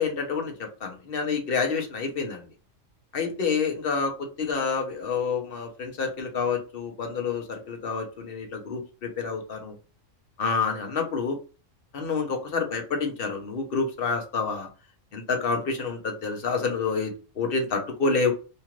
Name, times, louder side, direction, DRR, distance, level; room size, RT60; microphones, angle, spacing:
voice 1, 0.0-2.5 3.1-9.7 10.4-11.4 11.9-14.7 15.1-18.3, left 5 dB, 50° left, 3 dB, 0.9 m, -28 dB
2.8 x 2.4 x 2.9 m, 0.33 s
omnidirectional pair, 1.3 m